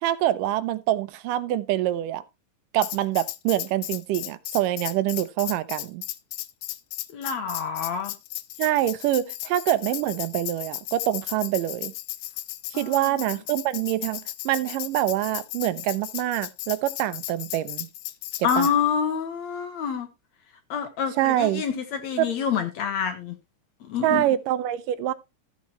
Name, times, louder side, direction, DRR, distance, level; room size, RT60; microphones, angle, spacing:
voice 1, 0.0-2.2 2.7-6.0 8.6-11.9 12.7-17.9 18.6-18.7 21.1-21.6 22.2-22.3 24.0-25.1, right 13 dB, 85° right, 2.4 m, -25 dB
Tambourine, 2.8-18.7, left 15 dB, 90° left, 2.3 m, -35 dB
voice 2, 7.1-8.1 12.7-13.1 18.4-20.1 20.7-23.4 23.8-24.3, left 7 dB, 65° left, 2.1 m, -27 dB
14.0 x 7.3 x 3.1 m
omnidirectional pair, 3.7 m